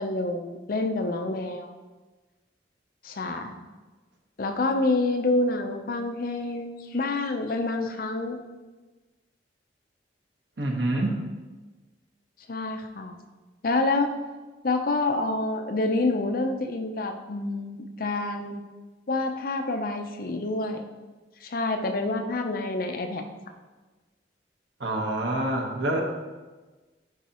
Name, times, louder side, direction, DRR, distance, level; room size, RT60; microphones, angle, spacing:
voice 1, 0.0-1.7 3.0-3.5 4.4-8.4 12.5-13.2 13.6-14.1 14.6-18.6 19.1-20.8 21.4-23.2, left 2 dB, 55° left, 6 dB, 0.5 m, -27 dB
voice 2, 10.6-11.2 24.8-26.0, right 1 dB, 90° right, 0 dB, 1.1 m, -26 dB
11.0 x 4.0 x 2.9 m, 1.3 s
head